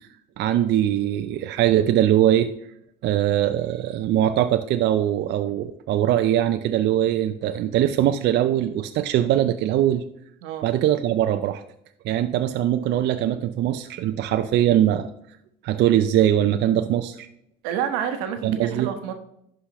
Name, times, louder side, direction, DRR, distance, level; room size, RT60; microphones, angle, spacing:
voice 1, 0.4-2.5 3.0-10.0 10.6-11.6 12.0-15.1 15.6-17.3 18.4-18.9, right 11 dB, 55° right, 8 dB, 0.5 m, -21 dB
voice 2, 17.6-19.1, right 8 dB, 85° right, 7 dB, 1.0 m, -28 dB
11.5 x 5.0 x 3.0 m, 0.73 s
supercardioid pair, 90°, 21 cm